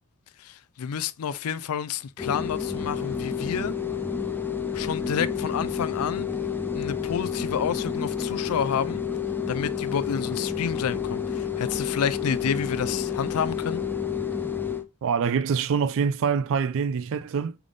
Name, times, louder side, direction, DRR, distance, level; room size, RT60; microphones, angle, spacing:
voice 1, 0.4-3.7 4.7-6.3 6.7-9.0 9.5-13.8, left 7 dB, 75° left, 0.4 m, -29 dB
sound 1, 2.2-14.8, left 7 dB, 10° left, 0.4 m, -29 dB
voice 2, 15.0-17.6, right 6 dB, 60° right, 0.4 m, -25 dB
3.8 x 3.5 x 3.2 m
head